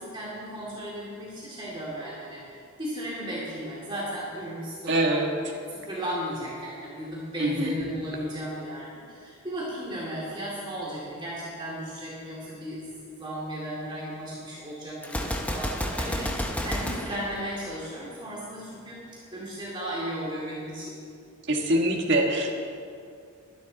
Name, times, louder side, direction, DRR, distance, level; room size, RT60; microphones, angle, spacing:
voice 1, 0.0-20.9, equal, 20° right, -6 dB, 2.5 m, -35 dB
voice 2, 4.9-5.3 7.4-7.7 21.5-22.6, right 1 dB, 50° right, 0 dB, 1.7 m, -24 dB
Gunshot gunfire, 15.0-18.1, equal, 5° left, 0.7 m, -31 dB
22.0 x 10.5 x 4.1 m, 2.4 s
head